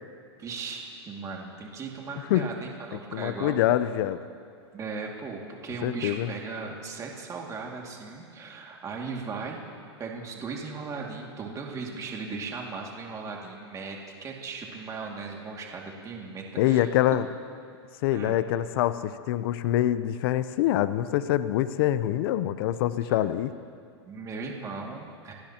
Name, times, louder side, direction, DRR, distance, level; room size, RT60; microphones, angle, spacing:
voice 1, 0.4-3.6 4.7-9.6 10.0-16.9 18.1-18.4 24.1-25.3, right 4 dB, 20° right, 0 dB, 2.3 m, -37 dB
voice 2, 2.9-4.2 5.8-6.3 16.6-17.3 18.0-23.5, left 13 dB, 55° left, 13 dB, 0.7 m, -25 dB
30.0 x 16.0 x 2.9 m, 2.4 s
hypercardioid pair, 130°, 15 cm